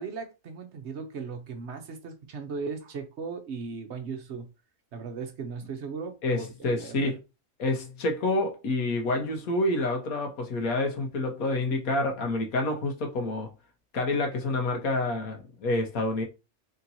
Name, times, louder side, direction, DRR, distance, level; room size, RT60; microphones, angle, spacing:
voice 1, 0.0-4.5 4.9-7.1, right 5 dB, 60° right, 0.9 m, -37 dB
voice 2, 6.2-7.2 7.6-13.5 13.9-16.2, left 2 dB, 90° left, 1.5 m, -28 dB
4.2 x 3.7 x 2.7 m
omnidirectional pair, 1.5 m